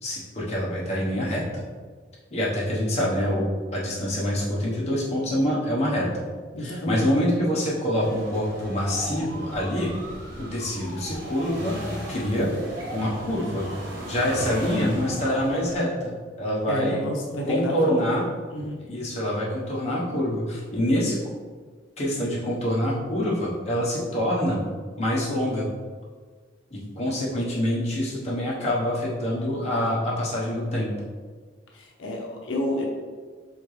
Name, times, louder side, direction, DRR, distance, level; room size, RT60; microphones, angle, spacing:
voice 1, 0.0-1.6 2.3-3.4 3.7-6.1 6.6-9.9 10.4-12.5 12.9-13.7 14.1-16.1 16.4-17.0 17.5-18.2 18.9-21.2 22.0-24.6 25.0-25.7 26.7-30.9, equal, 35° left, -6 dB, 1.1 m, -26 dB
voice 2, 6.5-7.0 16.7-18.2 18.5-18.8 31.7-32.8, left 1 dB, 90° left, -1 dB, 0.7 m, -30 dB
sound 1, 8.0-15.8, equal, 90° right, 1.2 m, -36 dB
4.5 x 3.6 x 3.2 m, 1.5 s
head